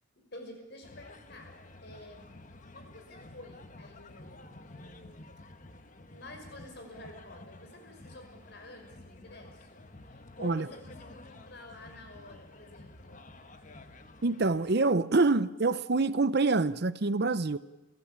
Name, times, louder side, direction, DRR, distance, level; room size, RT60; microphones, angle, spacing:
voice 1, 0.2-1.6 1.8-2.2 2.7-5.2 6.1-13.2, left 1 dB, 60° left, 5.7 m, -50 dB
sound 1, 0.8-14.7, left 2 dB, 40° left, 1.3 m, -51 dB
voice 2, 14.2-17.6, right 3 dB, 55° right, 0.7 m, -26 dB
30.0 x 15.0 x 8.9 m
head